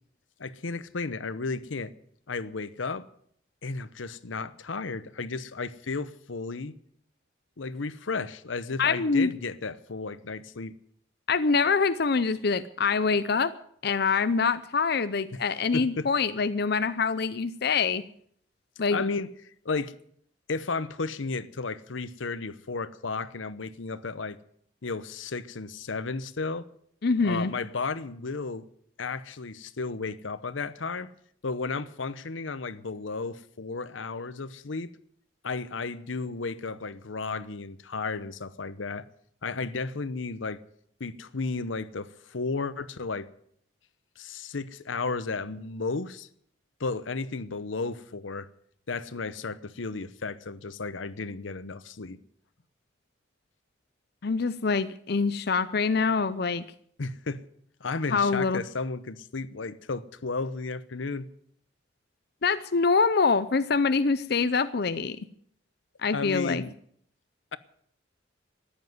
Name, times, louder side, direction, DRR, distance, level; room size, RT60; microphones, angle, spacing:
voice 1, 0.4-1.9 2.3-3.1 3.6-6.8 7.6-10.7 15.3-15.4 15.7-16.1 18.9-19.3 19.6-19.9 20.5-24.4 24.8-26.7 27.2-28.7 29.0-31.1 31.4-34.9 35.4-39.1 39.4-40.6 41.0-43.3 44.2-46.3 46.8-48.5 48.9-52.2 57.0-57.4 57.8-61.3 66.1-66.8, left 4 dB, 85° left, 0.8 m, -33 dB
voice 2, 8.8-9.3 11.3-13.5 13.8-18.0 18.8-19.0 27.0-27.5 54.2-56.6 58.1-58.6 62.4-65.2 66.0-66.6, left 4 dB, 55° left, 0.6 m, -25 dB
14.5 x 10.0 x 9.4 m
head